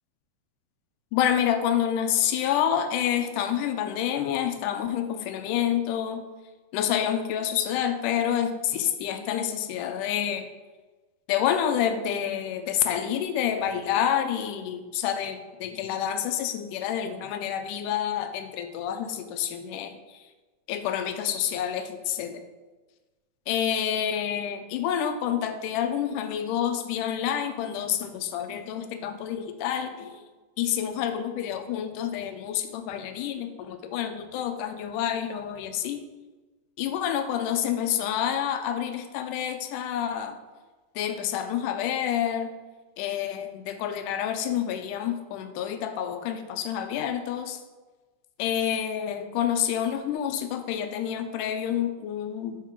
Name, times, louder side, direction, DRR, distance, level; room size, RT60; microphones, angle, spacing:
voice 1, 1.1-6.2 6.7-10.5 11.3-20.2 20.7-22.4 23.5-30.2 30.6-36.0 36.8-40.4 41.0-42.5 43.0-47.6 48.4-52.6, left 9 dB, 90° left, 8 dB, 2.2 m, -28 dB
6.4 x 5.9 x 4.5 m, 1.2 s
omnidirectional pair, 3.6 m